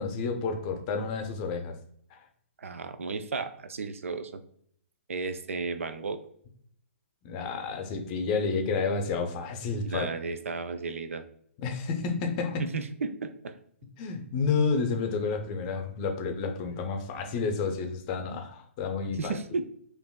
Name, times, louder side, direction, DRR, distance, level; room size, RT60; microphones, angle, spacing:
voice 1, 0.0-1.7 2.1-2.2 7.2-10.1 11.6-12.6 14.0-19.3, left 4 dB, 35° left, 5 dB, 0.6 m, -30 dB
voice 2, 2.6-4.4 5.1-6.2 9.9-11.2 12.6-13.5 19.2-19.6, right 4 dB, 70° right, 10 dB, 0.4 m, -33 dB
5.0 x 2.5 x 2.2 m, 0.65 s
figure-of-eight pair, 125°, 7 cm